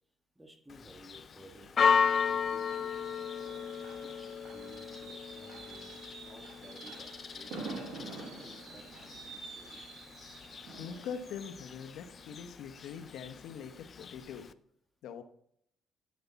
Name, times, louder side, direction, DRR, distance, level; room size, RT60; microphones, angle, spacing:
voice 1, 0.3-3.2 3.8-9.8, right 1 dB, 10° right, 3 dB, 1.4 m, -56 dB
Church bell, 0.7-14.5, left 6 dB, 45° left, 0.4 m, -35 dB
Fireworks, 1.4-13.1 13.5-13.8 14.0-14.1, right 4 dB, 80° right, 1.6 m, -48 dB
voice 2, 10.8-14.5 15.0-15.2, left 7 dB, 85° left, 8 dB, 0.9 m, -43 dB
9.3 x 6.6 x 4.0 m, 0.69 s
cardioid pair, 90°, 0 cm